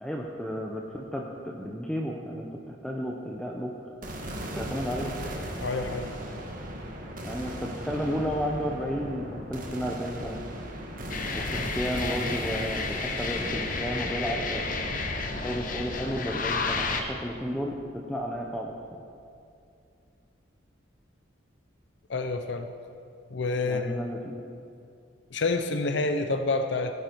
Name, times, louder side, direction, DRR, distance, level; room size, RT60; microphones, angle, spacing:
voice 1, 0.0-3.7 4.6-5.1 7.2-10.4 11.3-14.6 15.3-17.8 18.1-18.7 23.6-24.3, equal, 5° left, -1 dB, 0.7 m, -32 dB
sound 1, 4.0-18.3, equal, 45° right, 1.6 m, -38 dB
voice 2, 5.6-6.1 22.1-22.7 23.3-24.1 25.3-26.9, left 3 dB, 65° left, 7 dB, 0.7 m, -28 dB
sound 2, 11.1-17.0, left 4 dB, 45° left, 1.0 m, -31 dB
17.0 x 9.5 x 4.6 m, 2.5 s
head